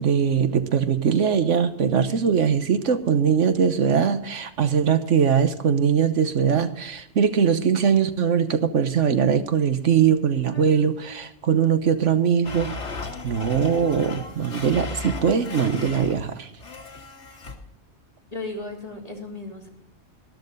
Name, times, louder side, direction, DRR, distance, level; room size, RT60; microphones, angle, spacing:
voice 1, 0.0-16.5, right 7 dB, 75° right, 10 dB, 1.3 m, -21 dB
Domestic sounds home sounds, 12.4-16.2 16.6-17.5, left 3 dB, 65° left, 2.1 m, -36 dB
voice 2, 18.3-19.7, left 2 dB, 30° left, 0 dB, 3.1 m, -35 dB
13.5 x 13.0 x 4.0 m, 0.76 s
omnidirectional pair, 1.3 m